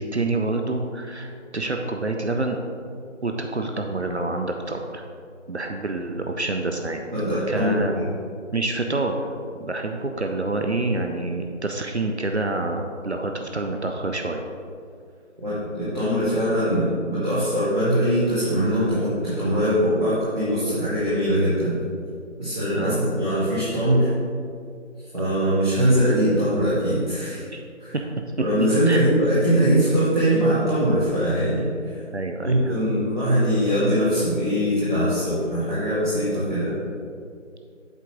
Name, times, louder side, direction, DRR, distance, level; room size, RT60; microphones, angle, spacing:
voice 1, 0.0-2.6 3.2-5.0 5.5-7.0 7.5-8.0 8.5-9.3 9.6-14.4 22.8-23.0 27.5-27.6 28.8-29.0 32.1-32.8, right 2 dB, 60° right, 3 dB, 0.6 m, -27 dB
voice 2, 7.1-8.1 15.4-21.8 22.4-24.1 25.1-27.4 27.8-28.0 28.4-31.7 32.4-36.7, equal, 40° right, -11 dB, 1.9 m, -22 dB
8.1 x 3.8 x 5.8 m, 2.3 s
figure-of-eight pair, 180°, 38 cm